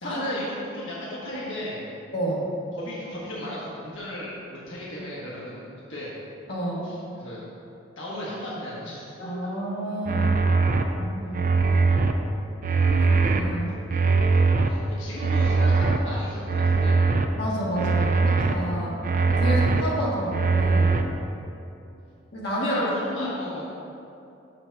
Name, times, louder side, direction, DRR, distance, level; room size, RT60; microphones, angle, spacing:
voice 1, 0.0-1.8 2.7-5.6 5.9-6.1 6.8-7.4 8.0-9.3 14.7-17.0 22.6-23.6, left 1 dB, 75° left, -7 dB, 1.5 m, -35 dB
voice 2, 2.1-2.4 6.5-6.9 9.2-10.4 10.9-11.6 13.1-13.7 17.4-19.0 19.3-20.9 22.3-22.9, equal, 55° left, -7 dB, 1.8 m, -29 dB
sound 1, 10.1-10.8 11.3-12.1 12.6-13.4 13.9-14.7 15.2-16.0 16.5-17.3 17.8-18.5 19.0-19.8 20.3-21.0, right 4 dB, 45° right, 0.4 m, -21 dB
6.6 x 5.9 x 4.6 m, 2.8 s
head